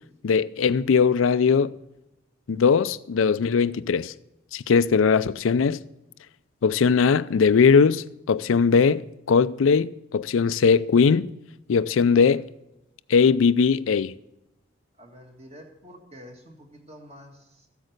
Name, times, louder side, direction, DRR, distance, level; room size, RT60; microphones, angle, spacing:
voice 1, 0.2-1.7 2.5-4.1 4.5-5.8 6.6-11.3 11.7-12.4 13.1-14.1, left 5 dB, 90° left, 0.4 m, -20 dB
voice 2, 15.0-17.7, equal, 30° right, 1.9 m, -47 dB
14.0 x 8.2 x 6.5 m
head